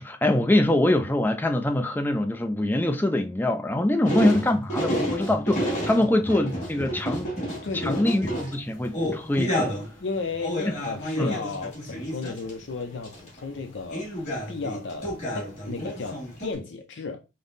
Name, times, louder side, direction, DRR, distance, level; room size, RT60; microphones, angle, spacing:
voice 1, 0.0-7.3 7.8-9.7 11.2-11.3, left 1 dB, 10° left, 0.3 m, -24 dB
sound 1, 4.0-9.9 10.2-12.7 13.0-13.4 13.9-16.5, equal, 35° left, 2.2 m, -30 dB
voice 2, 7.2-8.2 10.0-14.1 14.5-17.2, left 3 dB, 70° left, 0.5 m, -34 dB
5.3 x 2.0 x 3.9 m
head